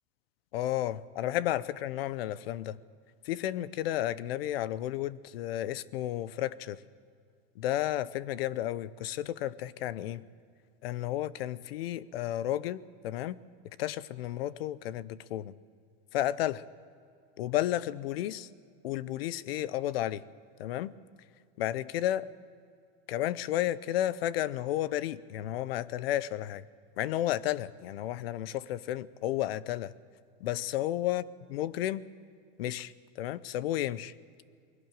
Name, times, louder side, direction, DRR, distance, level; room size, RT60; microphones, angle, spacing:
voice 1, 0.5-2.8 3.2-6.8 7.6-10.3 10.8-13.4 13.8-15.5 16.1-16.6 17.4-18.5 18.8-20.2 20.6-20.9 21.6-22.3 23.1-26.6 27.0-29.9 30.4-31.2 31.5-32.0 32.6-34.1, left 13 dB, 90° left, 19 dB, 0.8 m, -32 dB
21.0 x 17.0 x 7.5 m, 2.3 s
supercardioid pair, 155°, 29 cm